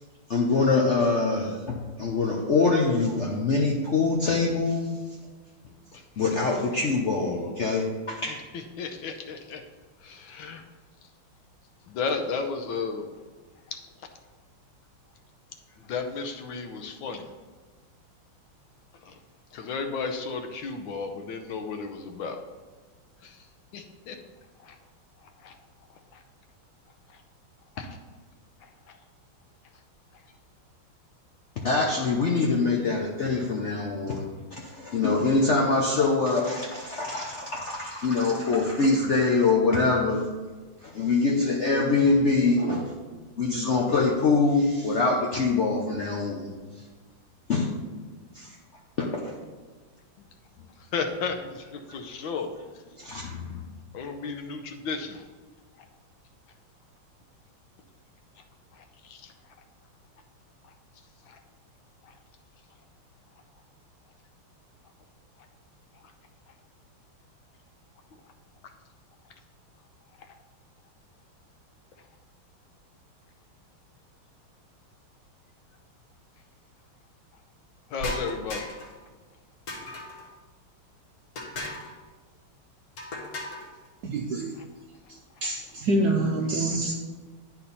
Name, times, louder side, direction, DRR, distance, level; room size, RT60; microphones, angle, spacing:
voice 1, 0.3-4.9 6.2-8.4 31.6-40.3 40.8-42.9 43.4-46.5 47.5-47.7 48.3-48.5 49.0-49.3 53.0-53.6, left 3 dB, 85° left, -2 dB, 0.6 m, -24 dB
voice 2, 8.3-9.6 10.0-10.6 11.9-13.1 13.7-13.8 15.8-17.3 19.0-19.2 19.5-22.4 23.2-23.5 23.7-24.2 24.6-24.8 25.2-25.6 26.1-26.2 27.1-27.2 27.8-28.0 28.9-29.0 50.6-52.5 53.9-55.3 58.7-59.3 60.6-60.7 61.3-61.4 62.0-62.2 70.2-70.3 77.9-78.7 84.5-84.6 85.4-85.5, left 5 dB, 70° left, 5 dB, 1.4 m, -34 dB
sound 1, 78.0-79.0 79.7-80.3 81.4-81.9 83.0-83.7, left 1 dB, 50° left, 1.4 m, -36 dB
voice 3, 84.0-84.5 85.4-86.9, right 2 dB, 70° right, 1 dB, 0.9 m, -26 dB
10.0 x 4.3 x 4.0 m, 1.4 s
omnidirectional pair, 2.3 m